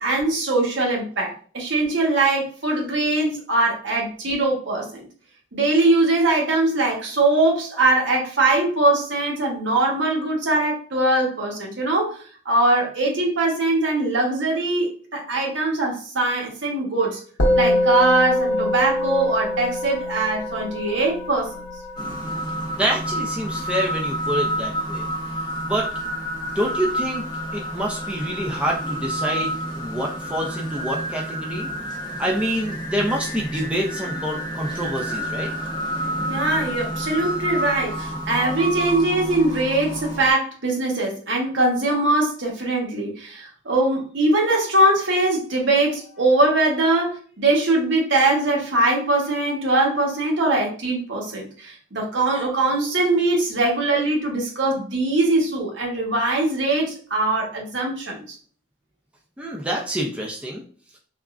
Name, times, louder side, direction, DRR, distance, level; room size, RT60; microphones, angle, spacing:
voice 1, 0.0-5.1 5.5-12.2 12.4-17.2 17.5-21.5 36.3-58.3, right 2 dB, 70° right, -1 dB, 0.9 m, -21 dB
Musical instrument, 17.4-26.9, left 1 dB, 70° left, 0.7 m, -26 dB
sound 1, 22.0-40.3, equal, 20° left, 0.7 m, -29 dB
voice 2, 22.8-25.1 25.6-25.9 26.5-27.2 27.5-31.7 32.2-35.5 59.4-60.6, equal, 5° right, -1 dB, 0.4 m, -27 dB
3.5 x 2.0 x 2.4 m, 0.43 s
head